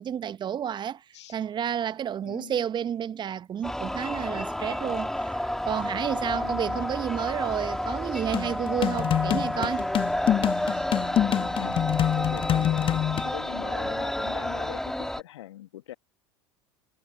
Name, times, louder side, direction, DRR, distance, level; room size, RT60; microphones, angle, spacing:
voice 1, 0.0-1.0 1.3-5.3 5.6-9.9, right 9 dB, 30° right, 1.0 m, -30 dB
voice 2, 2.2-2.6 6.3-7.0 10.7-11.8 12.1-15.9, left 14 dB, 70° left, 1.9 m, -42 dB
sound 1, 3.6-15.2, left 1 dB, 5° left, 2.2 m, -30 dB
sound 2, 8.3-13.3, left 11 dB, 35° left, 1.3 m, -26 dB
figure-of-eight pair, 75°, 15 cm